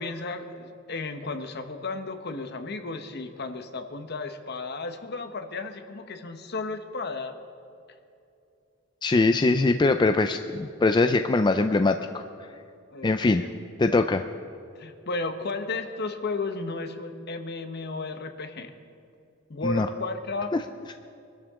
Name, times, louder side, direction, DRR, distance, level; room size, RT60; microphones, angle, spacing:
voice 1, 0.0-7.3 12.9-13.5 14.7-18.7 19.5-20.5, left 3 dB, 55° left, 7 dB, 1.0 m, -34 dB
voice 2, 9.0-12.2 13.0-13.4 13.8-14.2 19.6-19.9 20.5-20.6, left 3 dB, 20° left, 8 dB, 0.4 m, -22 dB
24.0 x 12.5 x 3.7 m, 2.5 s
head